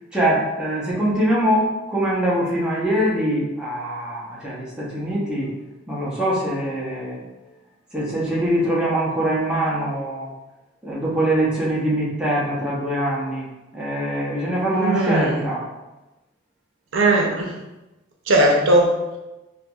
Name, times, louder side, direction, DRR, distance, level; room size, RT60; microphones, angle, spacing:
voice 1, 0.1-5.5 5.9-7.2 7.9-10.3 10.8-13.5 13.7-15.6, right 1 dB, 5° right, -8 dB, 0.8 m, -23 dB
voice 2, 14.8-15.4 16.9-17.5 18.3-18.9, right 1 dB, 80° right, 0 dB, 0.6 m, -18 dB
4.4 x 2.6 x 2.3 m, 1.0 s
head